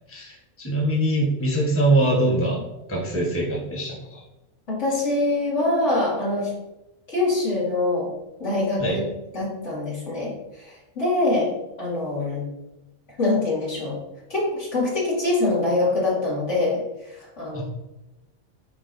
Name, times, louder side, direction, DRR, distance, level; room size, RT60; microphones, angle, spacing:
voice 1, 0.1-2.6 2.9-4.2 8.8-9.0 17.5-17.6, right 1 dB, 10° left, -3 dB, 1.3 m, -23 dB
voice 2, 4.7-6.5 7.1-8.1 8.4-9.0 9.3-11.5 11.8-12.4 13.2-14.0 14.3-16.8 17.4-17.6, left 2 dB, 60° left, -7 dB, 2.8 m, -24 dB
9.8 x 3.9 x 2.7 m, 0.98 s
omnidirectional pair, 1.4 m